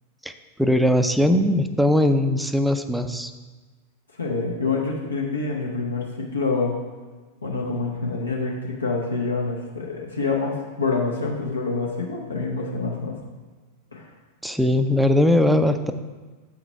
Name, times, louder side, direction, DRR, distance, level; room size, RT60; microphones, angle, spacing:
voice 1, 0.6-3.3 14.4-15.9, left 1 dB, 5° right, 9 dB, 0.3 m, -20 dB
voice 2, 4.2-6.8 7.4-13.2 13.9-14.1, left 4 dB, 75° left, -2 dB, 0.7 m, -26 dB
7.2 x 3.9 x 4.3 m, 1.3 s
figure-of-eight pair, 90°, 0 cm